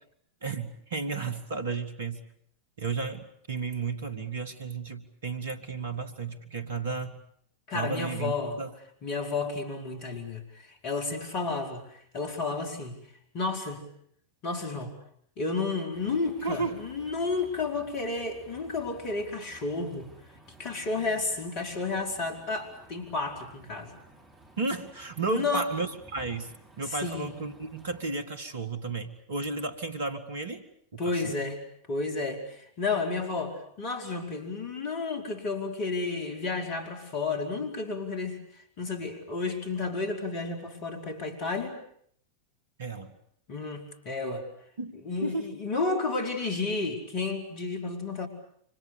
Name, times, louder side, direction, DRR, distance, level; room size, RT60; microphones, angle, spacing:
voice 1, 0.4-2.2 2.8-7.2 7.7-8.7 16.4-16.8 24.6-26.5 26.8-30.7 30.9-31.3 42.8-43.1 44.8-45.5, right 4 dB, 60° right, 10 dB, 1.9 m, -33 dB
voice 2, 7.7-8.6 9.0-12.9 13.3-13.8 14.4-14.9 15.4-20.1 20.6-23.9 25.3-25.7 27.0-27.3 31.0-31.6 31.9-38.4 38.8-41.8 43.5-44.5 45.0-48.3, left 3 dB, 40° left, 4 dB, 4.6 m, -31 dB
sound 1, 15.9-28.0, right 2 dB, 15° right, 6.7 m, -54 dB
27.5 x 25.0 x 6.8 m, 0.67 s
figure-of-eight pair, 90°, 0 cm